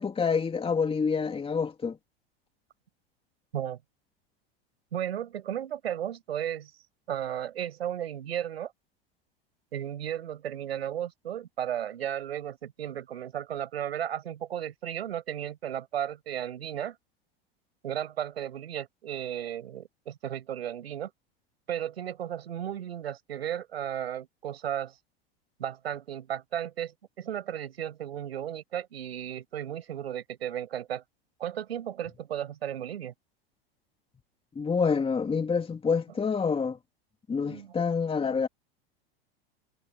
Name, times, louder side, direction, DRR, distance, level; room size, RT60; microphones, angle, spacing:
voice 1, 0.0-2.0 34.6-36.8 37.3-38.5, left 5 dB, 20° left, 2.9 m, -27 dB
voice 2, 4.9-6.7 7.1-8.7 9.7-17.0 17.8-21.1 21.7-25.0 25.6-31.0 31.4-33.1 37.4-37.7, right 10 dB, 90° right, 6.0 m, -34 dB
hypercardioid pair, 105°, 30 cm